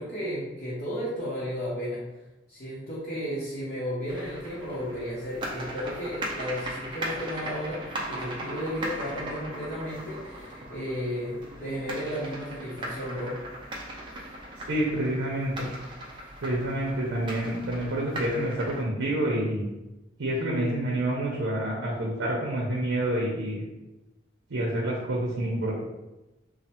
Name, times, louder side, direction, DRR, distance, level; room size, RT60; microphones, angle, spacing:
voice 1, 0.0-2.0 2.5-13.3, equal, 45° left, -8 dB, 0.6 m, -33 dB
sound 1, 4.1-18.8, right 1 dB, 25° right, 0.4 m, -38 dB
voice 2, 14.6-15.7 16.4-19.7 20.2-23.6 24.5-25.7, right 1 dB, 90° right, -3 dB, 0.6 m, -28 dB
3.1 x 2.0 x 2.8 m, 1.0 s
head